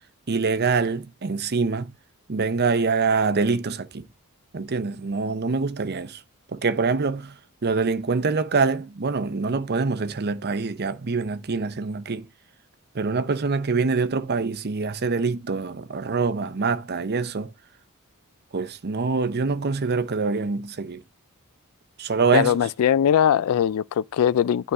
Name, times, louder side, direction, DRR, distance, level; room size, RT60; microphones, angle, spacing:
voice 1, 0.3-1.9 2.3-4.1 4.5-6.2 6.5-12.3 12.9-17.5 18.5-21.0 22.0-22.6, right 4 dB, 50° right, 0.7 m, -25 dB
voice 2, 22.3-24.7, left 9 dB, 70° left, 0.3 m, -21 dB
9.6 x 3.7 x 4.1 m
head